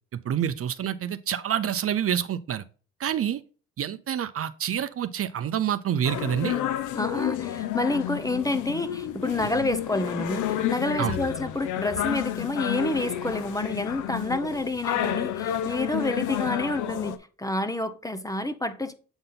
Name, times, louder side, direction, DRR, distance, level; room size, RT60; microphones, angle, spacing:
voice 1, 0.2-2.6 3.0-3.4 3.8-6.6 11.0-11.2, right 9 dB, 50° right, 0.6 m, -27 dB
sound 1, 6.0-17.2, left 11 dB, 85° left, 0.7 m, -30 dB
voice 2, 6.9-18.9, left 2 dB, 10° left, 0.8 m, -29 dB
7.9 x 4.0 x 3.8 m
cardioid pair, 90°, 30 cm